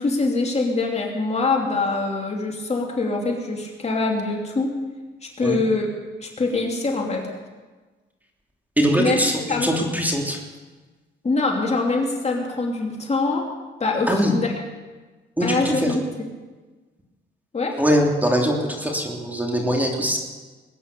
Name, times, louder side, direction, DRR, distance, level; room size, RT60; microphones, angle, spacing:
voice 1, 0.0-4.7 5.4-5.9 6.2-7.3 9.0-9.2 9.5-9.7 11.2-13.5 13.8-14.5 15.4-16.3 17.5-17.8, left 3 dB, 35° left, 0 dB, 2.9 m, -24 dB
voice 2, 8.8-10.4 14.1-14.3 15.4-15.9 17.8-20.2, equal, 10° right, 1 dB, 3.0 m, -22 dB
20.5 x 9.8 x 6.8 m, 1.3 s
cardioid pair, 90°, 20 cm